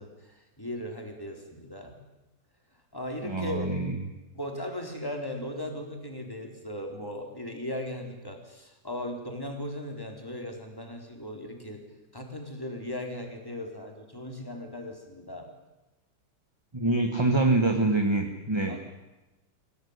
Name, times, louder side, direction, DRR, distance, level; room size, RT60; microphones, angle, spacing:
voice 1, 0.0-1.9 2.9-3.7 4.3-11.8 12.1-15.5 18.7-18.8, left 1 dB, 10° left, 3 dB, 3.9 m, -37 dB
voice 2, 3.2-3.9 16.7-18.8, right 2 dB, 15° right, 4 dB, 1.5 m, -25 dB
24.5 x 17.0 x 9.8 m, 1.0 s
omnidirectional pair, 2.4 m